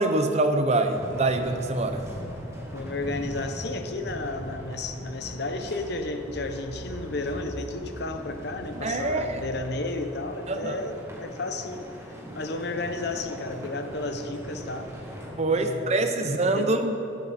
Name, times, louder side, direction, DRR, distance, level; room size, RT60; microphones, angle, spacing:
voice 1, 0.0-2.0 8.8-9.4 10.5-10.8 15.4-16.9, right 2 dB, 35° right, 7 dB, 0.7 m, -25 dB
sound 1, 0.9-15.3, equal, 15° right, 2.6 m, -41 dB
voice 2, 2.7-14.9 15.5-16.8, left 2 dB, 55° left, 7 dB, 0.9 m, -33 dB
sound 2, 4.3-9.6, equal, 75° left, 1.7 m, -43 dB
19.5 x 8.4 x 4.3 m, 2.8 s
head